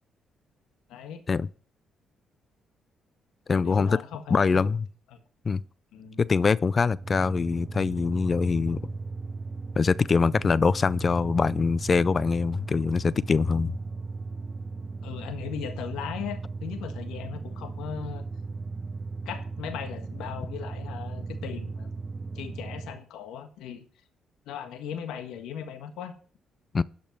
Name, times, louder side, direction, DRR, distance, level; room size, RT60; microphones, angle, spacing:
voice 1, 0.9-1.2 3.5-4.7 5.1-5.2 5.9-6.2 15.0-18.2 19.2-21.9 22.3-23.9 24.5-26.1, left 8 dB, 90° left, 1.5 m, -38 dB
voice 2, 3.5-4.0 4.3-4.9 5.5-5.6 6.2-8.8 9.8-13.8 26.7-26.8, left 5 dB, 35° left, 0.4 m, -23 dB
sound 1, 6.9-23.0, right 3 dB, 20° right, 0.7 m, -37 dB
12.0 x 5.4 x 5.9 m
cardioid pair, 90°, 0 cm